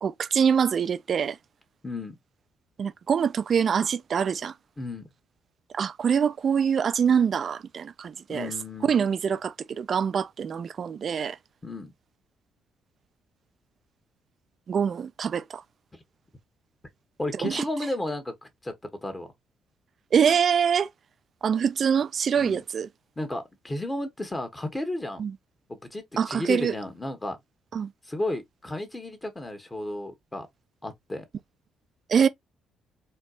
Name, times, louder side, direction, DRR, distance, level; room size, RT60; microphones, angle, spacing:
voice 1, 0.0-1.4 2.8-4.5 5.7-8.5 8.8-11.4 14.7-15.6 17.4-17.6 20.1-20.9 21.4-22.9 25.2-25.3 26.2-26.7 27.7-27.9 32.1-32.3, right 7 dB, 55° right, 0.4 m, -24 dB
voice 2, 1.8-2.1 4.8-5.0 8.3-9.0 11.6-11.9 17.2-18.7 19.0-19.3 22.4-22.6 23.2-25.2 25.7-27.4 28.1-30.5 30.8-31.2, left 1 dB, 20° left, 1.2 m, -33 dB
4.3 x 2.2 x 2.5 m
hypercardioid pair, 50°, 0 cm